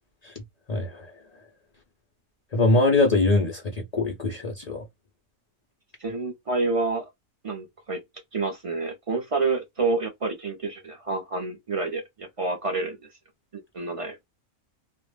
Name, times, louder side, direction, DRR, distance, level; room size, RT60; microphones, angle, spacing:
voice 1, 0.7-1.2 2.5-4.8, left 2 dB, 80° left, 0.3 m, -23 dB
voice 2, 6.0-7.0 7.4-8.0 8.3-13.0 13.7-14.2, right 3 dB, 55° right, 0.3 m, -28 dB
2.4 x 2.0 x 3.1 m
omnidirectional pair, 1.5 m